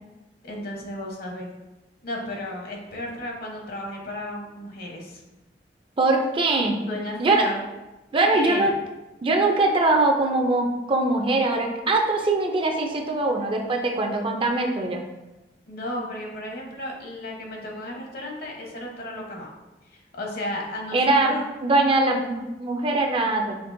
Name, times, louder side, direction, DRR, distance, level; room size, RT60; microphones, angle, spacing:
voice 1, 0.4-1.5 2.0-5.2 6.9-7.6 8.3-8.7 15.7-19.5 19.9-21.5, left 1 dB, 60° left, 0 dB, 0.9 m, -33 dB
voice 2, 6.0-6.8 7.2-7.4 8.1-8.7 9.2-15.0 20.9-21.3 21.6-23.6, right 2 dB, 30° right, 2 dB, 0.4 m, -22 dB
5.9 x 2.9 x 2.6 m, 1.1 s
head